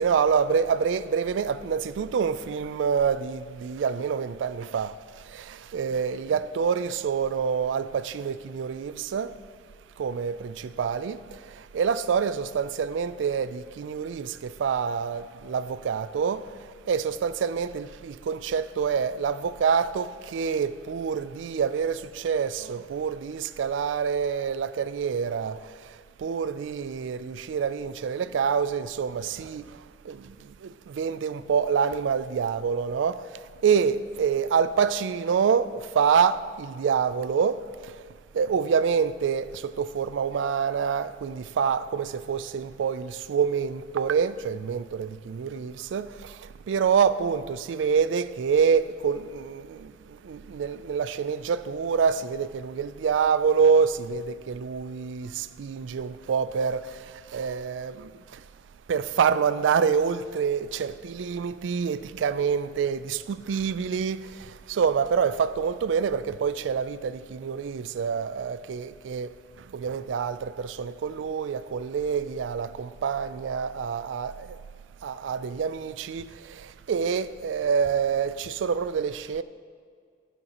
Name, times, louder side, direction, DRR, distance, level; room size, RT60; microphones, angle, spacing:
voice 1, 0.0-4.9 5.3-9.3 10.0-11.2 11.7-16.4 16.9-25.6 26.2-29.6 30.1-30.3 30.6-33.2 33.6-37.6 38.3-46.4 46.7-49.9 50.2-57.0 57.3-58.1 58.9-69.3 69.7-74.5 75.0-79.4, right 6 dB, 85° right, 0.3 m, -26 dB
15.5 x 6.7 x 2.9 m
head